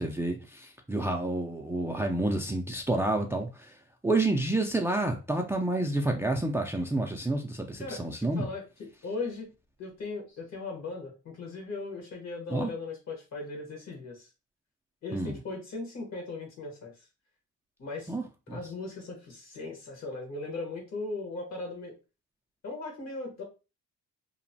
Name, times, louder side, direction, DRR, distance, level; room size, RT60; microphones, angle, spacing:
voice 1, 0.0-3.8 4.0-8.5 12.5-12.7 15.1-15.3 18.1-18.6, right 2 dB, 10° right, 0.3 m, -29 dB
voice 2, 7.8-9.5 9.8-14.3 15.0-16.9 17.8-18.1 18.5-21.9 22.6-23.4, left 3 dB, 60° left, 1.3 m, -38 dB
3.0 x 2.1 x 2.6 m
cardioid pair, 90°, 30 cm